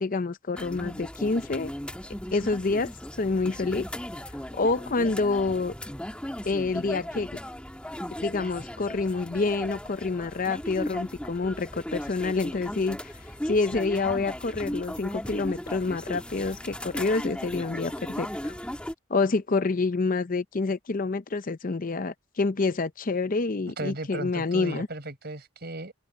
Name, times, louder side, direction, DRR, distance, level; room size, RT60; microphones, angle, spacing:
voice 1, 0.0-1.7 2.3-2.9 3.2-3.9 4.5-5.7 6.5-7.3 8.2-13.1 13.5-18.6 19.1-24.9, left 3 dB, 45° left, 0.6 m, -27 dB
sound 1, 0.5-18.9, equal, 5° left, 1.5 m, -37 dB
voice 2, 23.8-25.9, right 2 dB, 55° right, 4.6 m, -36 dB
head